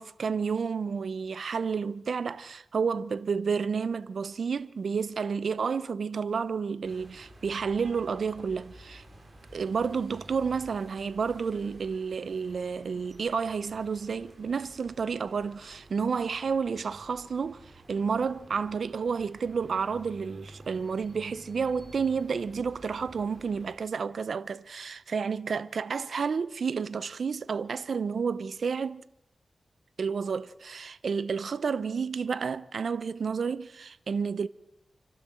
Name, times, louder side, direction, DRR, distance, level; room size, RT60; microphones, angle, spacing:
voice 1, 0.0-9.0 9.5-29.0 30.0-34.5, right 5 dB, 70° right, 0.8 m, -30 dB
sound 1, 6.8-23.8, right 1 dB, 45° right, 5.5 m, -52 dB
29.0 x 12.0 x 7.8 m
cardioid pair, 70°, 0 cm